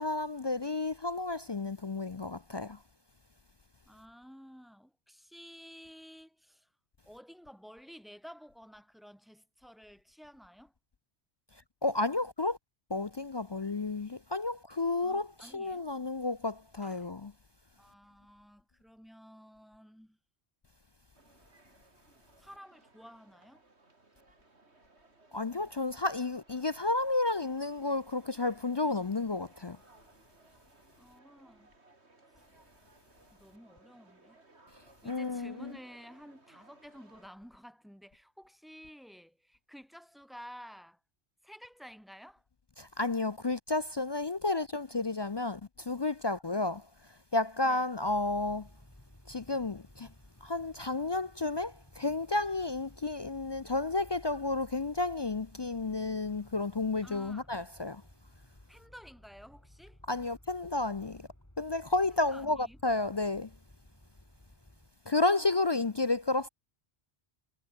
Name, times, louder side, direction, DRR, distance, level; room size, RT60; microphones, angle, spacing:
voice 1, 0.0-2.8 11.8-12.6 12.9-17.3 25.3-29.8 35.1-35.7 42.8-46.9 47.3-48.7 49.3-50.1 50.4-58.0 60.1-61.3 61.6-63.5 65.1-66.5, left 3 dB, 40° left, 0.4 m, -31 dB
voice 2, 3.9-6.7 7.0-10.7 15.0-15.9 16.8-17.1 17.8-20.2 22.4-23.6 31.0-31.7 32.3-32.4 33.3-34.4 35.0-41.0 41.4-42.4 47.6-47.9 57.0-57.5 58.7-60.0 62.1-62.8 65.2-65.7, equal, ahead, 7.7 m, -52 dB
sound 1, 21.1-37.3, right 2 dB, 80° right, 4.1 m, -62 dB
sound 2, 48.0-64.9, left 1 dB, 15° left, 3.9 m, -57 dB
omnidirectional pair, 1.1 m